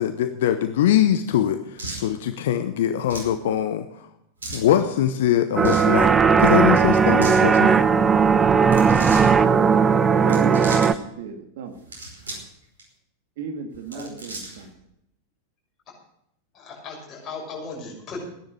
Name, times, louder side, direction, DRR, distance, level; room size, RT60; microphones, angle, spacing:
voice 1, 0.0-3.8 4.5-6.1 6.4-7.8, left 11 dB, 55° left, 9 dB, 0.9 m, -22 dB
sound 1, 1.8-2.1 3.0-3.3 4.4-4.7 5.5-5.9 7.0-7.4 8.6-9.3 10.2-10.9 11.7-12.5 12.8-12.9 13.7-14.7, right 2 dB, 70° right, 5.0 m, -35 dB
sound 2, 5.6-10.9, right 6 dB, 20° right, 0.7 m, -17 dB
voice 2, 9.9-11.7 13.4-14.7, right 5 dB, 55° right, 5 dB, 2.1 m, -34 dB
voice 3, 16.5-18.2, left 4 dB, 30° left, -2 dB, 6.7 m, -36 dB
16.0 x 10.5 x 6.3 m, 0.77 s
figure-of-eight pair, 90°, 0 cm